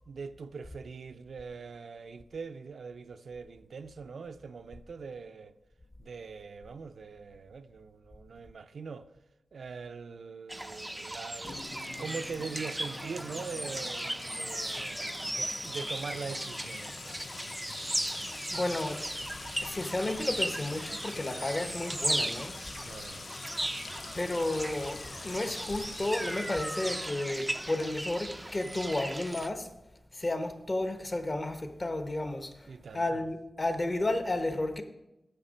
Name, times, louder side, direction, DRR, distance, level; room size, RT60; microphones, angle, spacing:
voice 1, 0.1-5.6 6.0-9.1 9.5-17.2 22.8-23.2 32.7-33.2, right 5 dB, 80° right, 0.5 m, -42 dB
sound 1, 10.5-29.5, right 1 dB, 10° right, 0.4 m, -37 dB
Sink (filling or washing) / Trickle dribble / Fill (with liquid), 11.4-28.9, left 4 dB, 60° left, 0.4 m, -45 dB
voice 2, 18.0-19.0 19.6-22.6 24.1-29.7 30.1-34.8, left 2 dB, 35° left, 0.9 m, -32 dB
9.9 x 6.7 x 5.1 m
wide cardioid pair, 100°, 0 cm